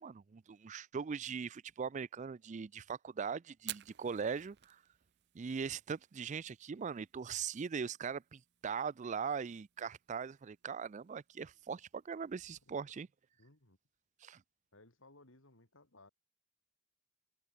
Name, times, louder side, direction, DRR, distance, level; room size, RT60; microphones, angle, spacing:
voice 1, 0.0-4.8 5.3-13.1 14.2-14.4, right 6 dB, 35° right, 0.4 m, -40 dB
Fire, 3.6-12.8, right 15 dB, 55° right, 0.8 m, -55 dB
voice 2, 13.4-13.8 14.7-16.1, left 2 dB, 70° left, 3.8 m, -61 dB
head